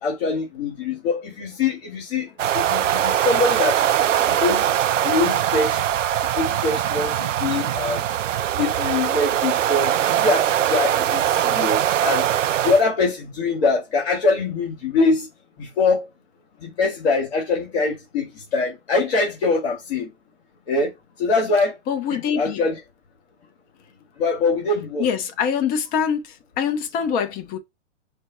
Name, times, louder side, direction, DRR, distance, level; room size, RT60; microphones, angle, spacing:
voice 1, 0.0-2.3 2.5-3.8 4.2-4.8 5.0-5.8 6.3-8.0 8.5-12.3 12.6-15.3 15.6-16.1 16.6-20.1 20.7-20.9 21.2-21.8 22.1-22.8 24.2-25.1, left 3 dB, 55° left, 2.3 m, -23 dB
sound 1, 2.4-12.8, right 10 dB, 90° right, 0.5 m, -21 dB
voice 2, 21.9-22.6 25.0-27.6, left 7 dB, 25° left, 0.8 m, -24 dB
5.2 x 2.2 x 4.1 m
hypercardioid pair, 130°, 36 cm